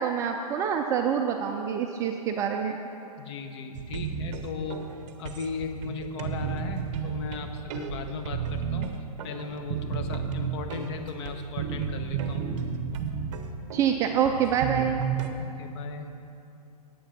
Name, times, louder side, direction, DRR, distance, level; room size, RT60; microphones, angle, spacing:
voice 1, 0.0-2.8 13.7-15.0, right 8 dB, 15° right, 3 dB, 0.3 m, -26 dB
voice 2, 3.2-4.9 5.2-12.4 15.4-16.1, left 4 dB, 45° left, 5 dB, 1.0 m, -37 dB
sound 1, 3.7-15.3, right 7 dB, 50° right, 1.0 m, -33 dB
10.0 x 8.6 x 5.9 m, 2.7 s
hypercardioid pair, 145°, 20 cm